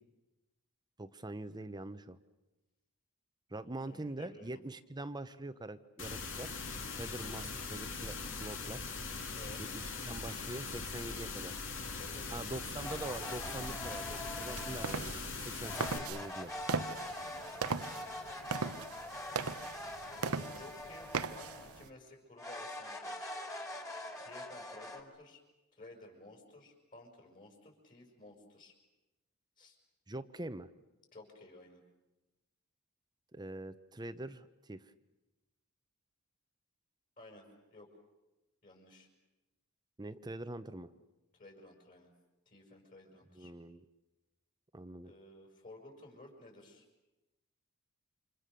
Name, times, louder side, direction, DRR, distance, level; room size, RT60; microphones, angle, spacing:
voice 1, 1.0-2.2 3.5-6.5 6.9-8.8 9.6-11.5 12.3-16.5 30.1-30.7 33.3-34.9 40.0-40.9 43.3-43.8 44.7-45.1, right 2 dB, 20° right, 12 dB, 0.9 m, -44 dB
voice 2, 3.9-4.6 7.2-7.5 9.3-9.7 11.7-12.7 17.0-18.3 20.1-23.3 24.2-25.4 25.7-28.7 29.6-29.8 31.1-31.8 37.2-37.9 38.6-39.1 41.3-42.1 42.5-43.5 45.0-46.8, left 2 dB, 40° left, 1 dB, 6.1 m, -55 dB
sound 1, 6.0-16.0, left 4 dB, 60° left, 2.8 m, -41 dB
sound 2, 12.8-15.1 15.6-21.8 22.4-25.0, left 1 dB, 15° left, 3.0 m, -44 dB
sound 3, 14.4-21.9, right 5 dB, 70° right, 0.9 m, -39 dB
29.0 x 26.5 x 6.8 m, 1.0 s
head